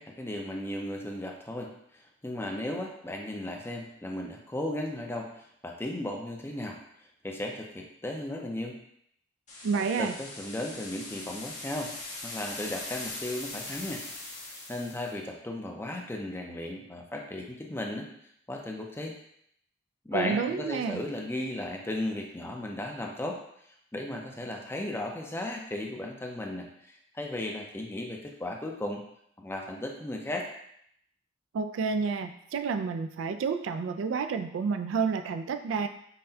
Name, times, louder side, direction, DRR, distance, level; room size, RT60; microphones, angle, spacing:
voice 1, 0.0-5.3 5.6-6.8 7.2-8.8 9.9-11.9 12.2-14.0 14.4-18.1 18.5-19.1 20.0-23.4 23.9-29.0 29.4-30.5, left 1 dB, 10° left, 1 dB, 0.5 m, -35 dB
sound 1, 9.5-15.1, left 2 dB, 40° left, 1.2 m, -41 dB
voice 2, 9.6-10.1 20.1-21.0 31.5-35.9, right 5 dB, 80° right, 8 dB, 0.3 m, -30 dB
5.5 x 2.2 x 2.7 m, 0.71 s
head